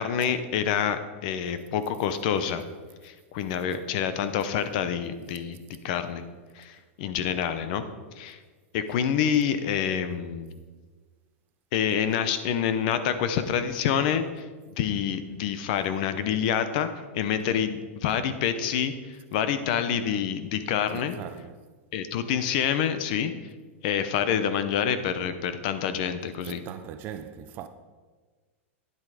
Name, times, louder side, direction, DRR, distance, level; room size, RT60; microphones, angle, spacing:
voice 1, 0.0-2.6 3.0-5.6 5.8-6.2 6.6-7.8 8.2-8.4 8.7-10.6 11.7-14.4 14.8-16.9 17.1-21.1 21.9-23.3 23.8-26.6, left 8 dB, 40° left, 0.7 m, -27 dB
voice 2, 20.9-21.6 26.4-27.7, right 9 dB, 25° right, 0.4 m, -40 dB
10.0 x 7.8 x 4.9 m
supercardioid pair, 170°, 7 cm